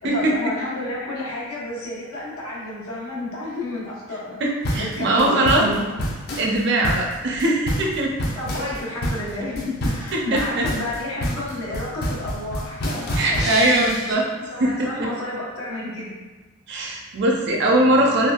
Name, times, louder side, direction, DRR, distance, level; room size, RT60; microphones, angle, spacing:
voice 1, 0.0-4.4 4.7-6.0 8.3-13.9 14.5-16.1, left 2 dB, 90° left, -6 dB, 0.9 m, -30 dB
voice 2, 4.4-5.6 6.4-8.1 10.1-10.6 13.1-14.2 14.6-14.9 16.7-18.3, right 1 dB, 55° right, 0 dB, 0.5 m, -20 dB
sound 1, 4.6-14.1, equal, 50° left, 0.5 m, -28 dB
3.4 x 2.2 x 2.3 m, 1.2 s
head